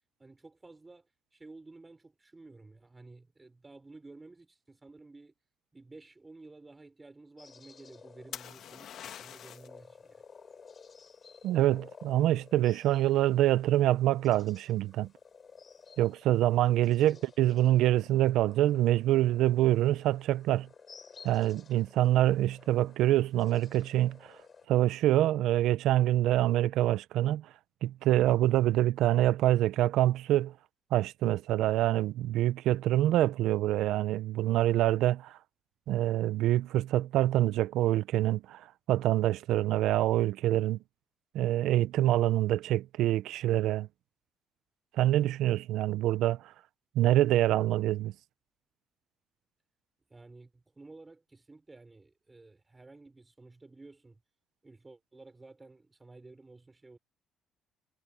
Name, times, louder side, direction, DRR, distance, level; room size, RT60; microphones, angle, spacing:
voice 1, 0.2-1.1 1.3-5.3 5.7-10.2 17.0-17.2 50.1-54.2 54.6-57.0, right 3 dB, 20° right, 6.1 m, -53 dB
sound 1, 7.4-24.7, left 5 dB, 40° left, 6.5 m, -55 dB
sound 2, 8.3-9.8 13.5-13.9, left 10 dB, 70° left, 1.7 m, -44 dB
voice 2, 11.4-15.1 16.0-20.7 21.2-24.2 24.7-27.4 27.8-30.5 30.9-35.3 35.9-38.6 38.9-40.8 41.3-43.9 45.0-46.4 47.0-48.1, right 14 dB, 85° right, 0.6 m, -26 dB
cardioid pair, 85°, 0 cm